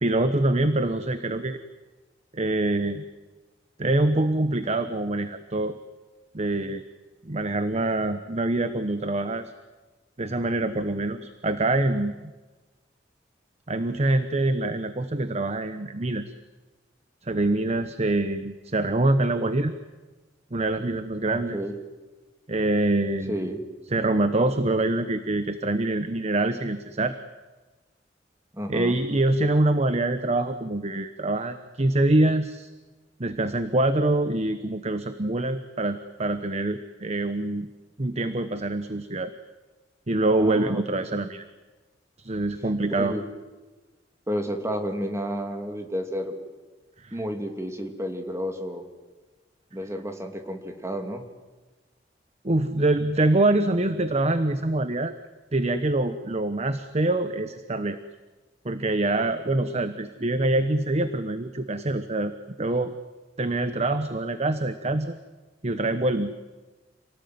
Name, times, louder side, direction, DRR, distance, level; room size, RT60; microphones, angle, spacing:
voice 1, 0.0-1.6 2.3-3.0 3.8-5.8 6.3-6.8 7.2-9.5 10.2-12.1 13.7-16.2 17.2-19.7 20.5-21.6 22.5-23.5 23.9-27.1 28.7-32.7 33.2-37.7 38.0-39.3 40.1-41.4 42.2-43.1 47.0-47.2 52.4-55.1 55.5-58.0 58.6-62.3 62.6-62.9 63.4-65.2 65.6-66.3, right 2 dB, 35° right, 10 dB, 1.1 m, -25 dB
voice 2, 21.3-21.7 23.3-23.6 28.5-29.0 40.4-40.8 42.9-43.2 44.3-46.3 47.1-48.8 49.7-51.2, equal, 15° right, 4 dB, 2.8 m, -31 dB
28.0 x 18.5 x 9.5 m, 1.2 s
head